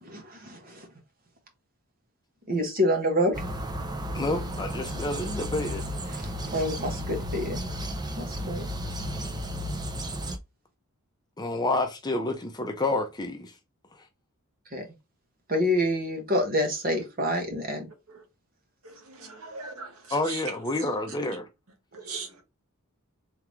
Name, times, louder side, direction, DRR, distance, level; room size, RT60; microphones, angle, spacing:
voice 1, 0.0-0.9 2.5-3.3 6.1-7.6 8.2-8.7 14.7-14.9 15.5-17.9, equal, 40° right, 1.3 m, -27 dB
sound 1, 3.3-10.4, equal, 20° right, 0.6 m, -33 dB
voice 2, 4.1-5.8 6.8-6.9 11.4-13.5 20.1-21.5, left 2 dB, 20° left, 0.7 m, -29 dB
voice 3, 18.8-20.4 21.9-22.4, right 4 dB, 70° right, 1.3 m, -39 dB
3.6 x 3.5 x 3.1 m
head